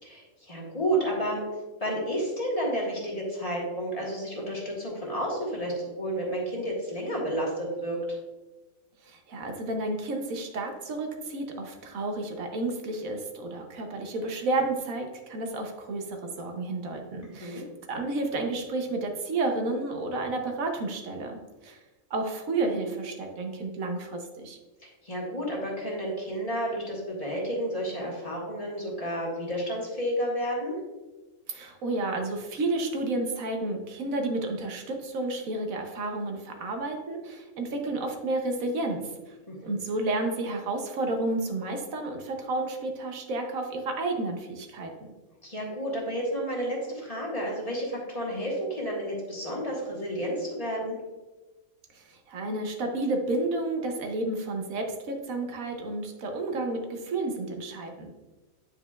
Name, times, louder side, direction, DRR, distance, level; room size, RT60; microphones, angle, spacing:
voice 1, 0.0-1.4 1.8-8.2 17.2-17.6 24.8-30.8 39.5-39.6 45.4-51.0, equal, 30° left, -3 dB, 1.3 m, -31 dB
voice 2, 9.0-17.6 17.9-21.8 22.1-24.6 31.5-45.1 51.9-58.1, right 2 dB, 85° right, 3 dB, 1.3 m, -31 dB
9.0 x 4.8 x 2.4 m, 1.2 s
omnidirectional pair, 1.4 m